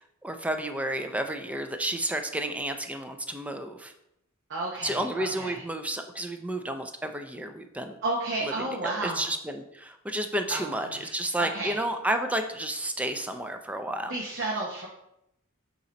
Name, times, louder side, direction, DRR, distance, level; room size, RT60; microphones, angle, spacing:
voice 1, 0.0-3.9 4.8-8.0 8.4-14.1, right 1 dB, 5° right, 6 dB, 0.4 m, -31 dB
voice 2, 4.5-5.6 8.0-9.2 10.5-11.8 14.1-14.9, right 2 dB, 55° right, -3 dB, 1.0 m, -32 dB
6.7 x 3.0 x 5.1 m, 0.81 s
head